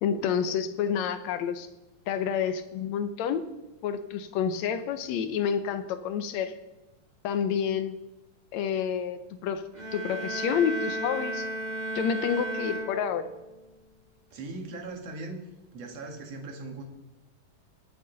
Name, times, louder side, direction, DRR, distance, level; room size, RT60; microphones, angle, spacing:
voice 1, 0.0-1.7 2.1-3.4 3.8-6.5 7.2-8.0 8.5-9.6 9.9-11.5 11.9-13.3, left 7 dB, 75° left, 10 dB, 1.7 m, -29 dB
sound 1, 9.7-13.6, right 1 dB, 20° right, 1.1 m, -34 dB
voice 2, 14.3-15.4 15.7-16.8, right 3 dB, 55° right, 3 dB, 2.7 m, -39 dB
23.5 x 8.0 x 3.9 m, 1.0 s
omnidirectional pair, 3.8 m